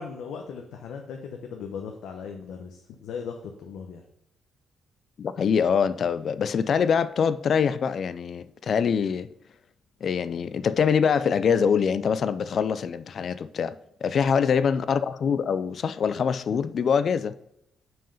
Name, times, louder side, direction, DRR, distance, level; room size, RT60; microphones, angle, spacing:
voice 1, 0.0-4.0, left 6 dB, 75° left, 0.9 m, -38 dB
voice 2, 5.2-9.3 10.0-13.8 14.0-17.3, left 6 dB, 45° left, 0.3 m, -24 dB
6.1 x 4.7 x 5.5 m
cardioid pair, 145°, 0 cm